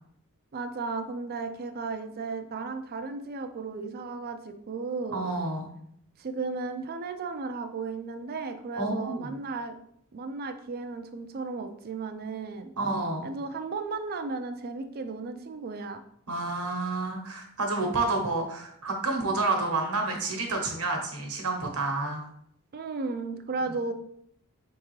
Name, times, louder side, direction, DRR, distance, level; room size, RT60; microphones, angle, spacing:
voice 1, 0.5-5.3 6.2-9.8 10.1-12.7 13.2-16.0 22.7-23.9, right 4 dB, 45° right, 7 dB, 0.4 m, -35 dB
voice 2, 5.1-5.7 8.8-9.3 12.8-13.3 16.3-22.3 23.5-23.7, right 3 dB, 75° right, 2 dB, 1.0 m, -29 dB
4.6 x 3.6 x 3.1 m, 0.70 s
head